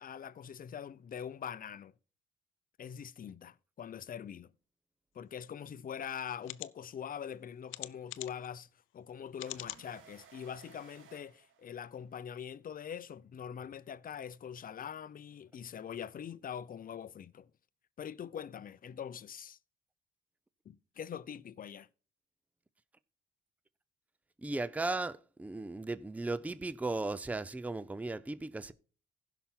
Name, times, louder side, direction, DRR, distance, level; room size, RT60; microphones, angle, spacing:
voice 1, 0.0-1.9 2.8-4.5 5.1-8.7 8.9-17.5 18.0-19.6 20.6-21.9, left 8 dB, 45° left, 0.6 m, -43 dB
sound 1, 5.7-5.8 6.4-6.7 7.7-8.5 9.4-9.8 10.4-10.5 10.8-10.9, left 16 dB, 85° left, 0.5 m, -43 dB
sound 2, 9.5-12.2, right 7 dB, 85° right, 2.0 m, -59 dB
voice 2, 24.4-28.7, right 2 dB, 5° right, 0.5 m, -36 dB
15.5 x 5.9 x 3.7 m
cardioid pair, 90°, 20 cm